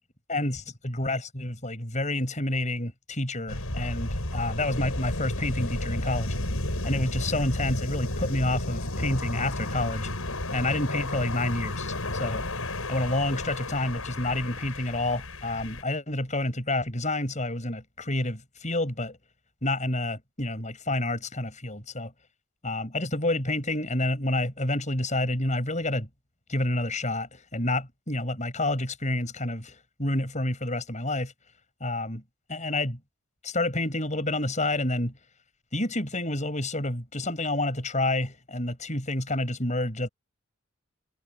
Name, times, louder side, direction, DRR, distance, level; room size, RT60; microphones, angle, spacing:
voice 1, 0.3-6.3 6.8-10.1 10.5-12.4 12.9-19.2 19.6-22.1 22.6-26.1 26.5-31.3 31.8-32.2 32.5-33.0 33.4-35.1 35.7-40.1, left 2 dB, 35° left, 7.8 m, -29 dB
sound 1, 3.5-15.8, left 1 dB, 90° left, 6.0 m, -32 dB
head